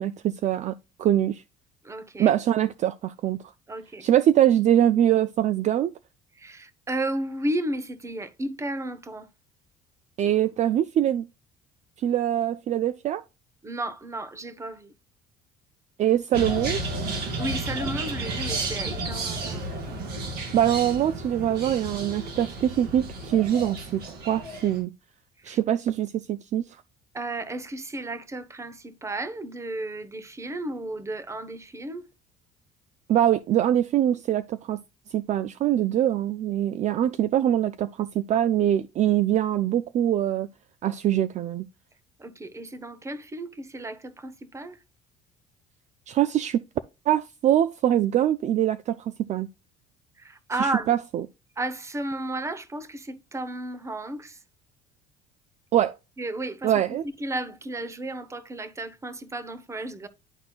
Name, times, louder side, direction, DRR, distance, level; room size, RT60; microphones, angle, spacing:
voice 1, 0.0-1.4 2.2-3.4 4.0-5.9 10.2-11.3 12.0-13.2 16.0-16.8 20.5-24.9 25.5-26.7 33.1-34.8 35.1-40.5 40.8-41.6 46.1-46.6 47.1-49.5 50.6-51.0 55.7-55.9 56.6-57.0, right 11 dB, 45° right, 0.4 m, -23 dB
voice 2, 1.8-2.3 3.7-4.1 6.4-9.3 13.6-14.9 17.4-20.0 25.4-25.6 27.1-32.1 42.2-44.8 50.2-50.9 51.6-54.4 56.2-60.1, right 1 dB, 15° right, 0.8 m, -33 dB
sound 1, 16.3-24.8, right 2 dB, 70° right, 2.3 m, -32 dB
10.5 x 4.3 x 2.3 m
cardioid pair, 105°, 17 cm